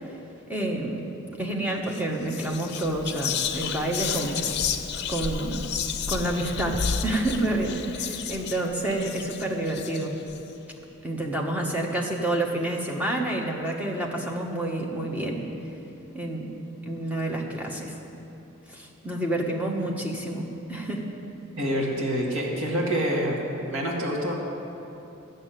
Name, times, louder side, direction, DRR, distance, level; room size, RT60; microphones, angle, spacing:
voice 1, 0.5-1.0 1.4-4.4 5.1-5.7 6.1-10.2 11.0-15.5 16.1-16.5 16.9-17.9 18.7-21.0, right 1 dB, 5° right, -1 dB, 1.2 m, -28 dB
Whispering, 1.8-2.0 2.3-10.4, left 7 dB, 50° left, 0.6 m, -31 dB
voice 2, 21.6-24.3, equal, 65° right, -3 dB, 1.8 m, -27 dB
12.0 x 6.6 x 9.0 m, 2.9 s
head